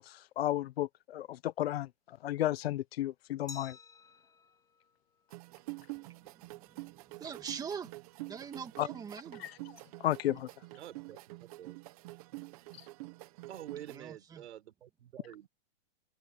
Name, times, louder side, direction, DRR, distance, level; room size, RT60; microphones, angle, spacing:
voice 1, 0.0-1.9 2.2-3.7 8.8-8.9 9.4-9.5 10.0-10.5, left 13 dB, 55° left, 0.9 m, -33 dB
Glass, 3.5-6.2, left 4 dB, 10° left, 4.9 m, -54 dB
sound 1, 5.3-14.0, right 22 dB, 30° right, 1.1 m, -47 dB
voice 2, 5.9-7.9 8.3-9.5 13.9-14.5, right 7 dB, 10° right, 2.4 m, -44 dB
voice 3, 10.8-11.8 13.5-15.5, right 11 dB, 65° right, 4.7 m, -48 dB
hypercardioid pair, 170°, 36 cm